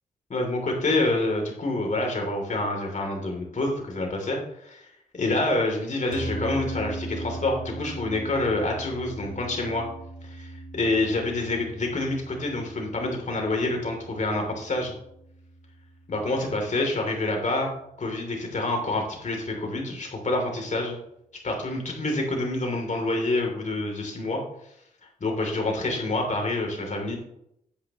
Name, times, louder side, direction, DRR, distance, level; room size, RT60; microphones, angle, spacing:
voice 1, 0.3-4.4 4.6-4.8 5.1-9.8 10.2-14.9 16.1-17.7 18.0-21.0 21.4-24.4 25.2-27.2, left 2 dB, 55° left, 1 dB, 3.0 m, -27 dB
sound 1, 6.1-16.6, right 2 dB, 85° right, 2.0 m, -39 dB
10.0 x 8.7 x 3.0 m, 0.76 s
cardioid pair, 65°, 15 cm